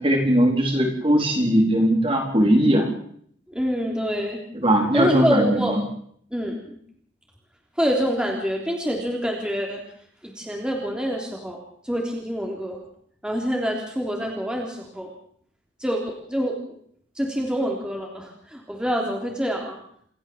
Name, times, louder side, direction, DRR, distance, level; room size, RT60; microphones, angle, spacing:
voice 1, 0.0-2.9 4.5-5.8, right 1 dB, 30° right, 2 dB, 4.1 m, -19 dB
voice 2, 3.5-4.4 4.9-5.8 6.3-6.5 7.8-9.8 10.2-12.8 13.2-15.1 15.8-16.6 17.1-19.8, equal, 5° right, 0 dB, 3.5 m, -26 dB
27.5 x 13.5 x 7.4 m, 0.64 s
head